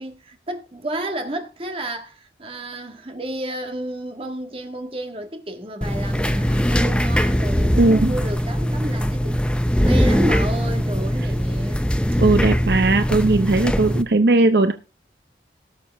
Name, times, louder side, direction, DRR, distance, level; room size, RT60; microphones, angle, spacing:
voice 1, 0.0-9.4 9.8-11.8, right 1 dB, 30° right, 1.7 m, -31 dB
sound 1, 5.8-14.0, equal, 5° left, 0.7 m, -21 dB
voice 2, 7.8-8.1 12.2-14.7, right 2 dB, 65° right, 0.7 m, -18 dB
18.5 x 6.8 x 3.5 m
head